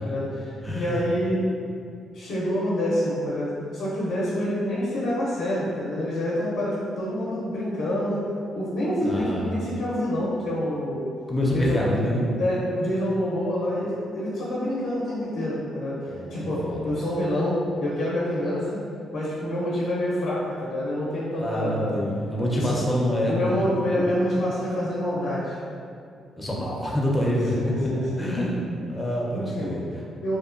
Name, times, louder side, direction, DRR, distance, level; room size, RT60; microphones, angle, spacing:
voice 1, 0.0-1.4 2.1-8.2 8.6-11.1 11.5-11.8 12.4-18.8 19.1-22.0 22.5-22.7 23.3-25.6 27.6-28.2 29.3-29.8 30.2-30.4, left 1 dB, 70° left, -7 dB, 0.5 m, -27 dB
voice 2, 0.6-1.0 9.0-9.5 11.3-12.3 16.1-16.9 21.4-23.3 26.4-27.6 28.0-30.0, equal, 10° left, -4 dB, 0.4 m, -26 dB
2.6 x 2.1 x 2.4 m, 2.4 s
cardioid pair, 90°, 0 cm